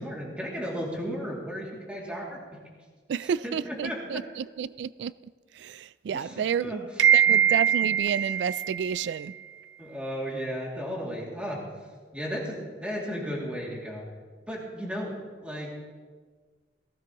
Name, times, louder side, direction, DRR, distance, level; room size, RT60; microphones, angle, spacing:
voice 1, 0.0-2.4 3.4-4.2 6.1-6.8 9.8-11.6 12.1-14.0 14.5-15.1 15.4-15.7, equal, 5° right, 2.5 m, -34 dB
voice 2, 3.1-5.1 5.5-9.8, right 8 dB, 70° right, 0.3 m, -26 dB
18.5 x 16.0 x 3.0 m
head